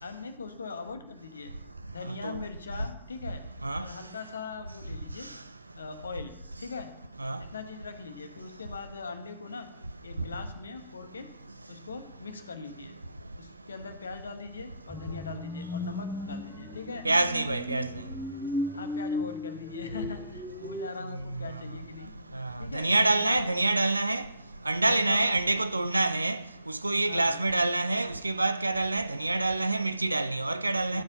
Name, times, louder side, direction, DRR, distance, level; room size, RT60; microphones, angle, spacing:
voice 1, 0.0-1.5 1.9-3.4 3.8-5.3 5.8-6.9 7.4-9.7 10.0-11.3 11.7-12.9 13.4-17.1 18.7-22.1 22.6-23.5 24.9-25.6 27.1-27.4 30.9-31.0, left 4 dB, 75° left, 0.8 m, -41 dB
sound 1, 14.9-20.9, left 2 dB, 5° left, 0.9 m, -36 dB
voice 2, 17.0-17.9 21.3-21.5 22.3-24.3 24.7-31.0, right 2 dB, 85° right, 0.4 m, -27 dB
12.0 x 4.9 x 5.3 m
figure-of-eight pair, 90°, 0 cm